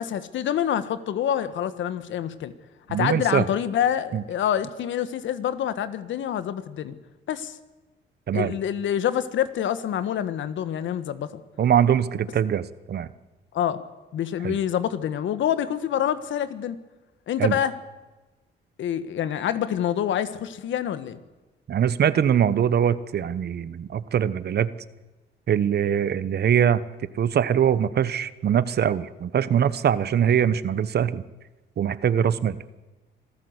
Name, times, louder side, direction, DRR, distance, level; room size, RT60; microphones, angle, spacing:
voice 1, 0.0-2.5 2.9-7.0 7.3-7.6 8.3-11.4 13.5-13.8 14.1-16.8 17.3-17.7 18.8-21.2, left 10 dB, 70° left, 13 dB, 1.4 m, -26 dB
voice 2, 2.9-3.4 4.1-4.2 8.3-8.5 11.6-13.1 14.4-14.6 17.4-17.5 21.7-24.7 25.5-26.8 27.2-31.2 31.8-32.5, right 9 dB, 55° right, 16 dB, 1.1 m, -22 dB
26.0 x 14.5 x 8.1 m, 1.1 s
cardioid pair, 90°, 20 cm